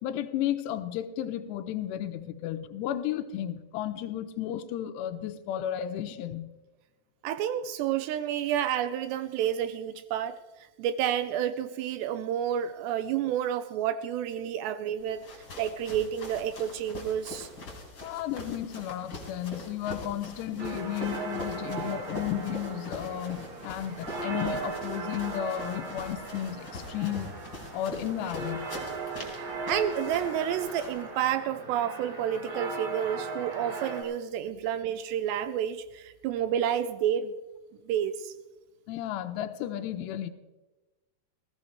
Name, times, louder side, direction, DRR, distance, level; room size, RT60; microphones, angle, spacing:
voice 1, 0.0-6.5 18.0-27.3 27.7-28.7 38.9-40.3, left 11 dB, 80° left, 2.7 m, -33 dB
voice 2, 7.2-10.4 10.8-15.2 15.6-17.5 29.2-37.3 37.9-38.3, right 10 dB, 80° right, 2.6 m, -30 dB
sound 1, 15.0-31.0, left 2 dB, 25° left, 3.4 m, -43 dB
sound 2, 20.6-34.0, right 3 dB, 55° right, 3.6 m, -38 dB
20.0 x 15.5 x 3.2 m
omnidirectional pair, 5.4 m